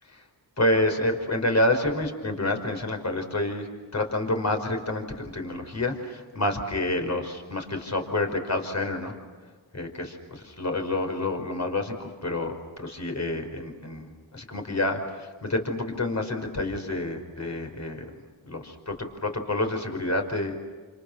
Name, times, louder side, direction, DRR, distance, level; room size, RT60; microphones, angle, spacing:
voice 1, 0.6-9.1 9.7-12.5 12.8-18.0 18.4-20.6, left 1 dB, 35° left, 5 dB, 5.3 m, -28 dB
29.0 x 28.0 x 6.0 m, 1.4 s
cardioid pair, 65°, 47 cm